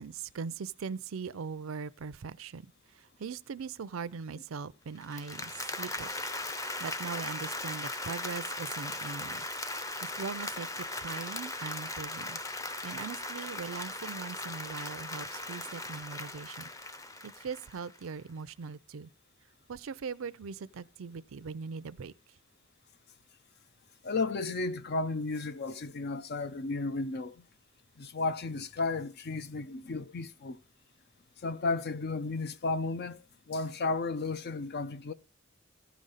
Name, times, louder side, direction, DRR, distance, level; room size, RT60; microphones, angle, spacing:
voice 1, 0.0-6.1 6.8-9.5 10.0-12.4 12.8-16.7 17.2-19.1 19.7-22.4, right 5 dB, 80° right, 0.5 m, -40 dB
Applause, 5.0-18.0, left 2 dB, 15° left, 0.7 m, -38 dB
voice 2, 24.0-27.4 28.0-30.6 31.4-33.2 33.5-35.1, left 3 dB, 50° left, 0.5 m, -33 dB
15.0 x 5.1 x 4.0 m
head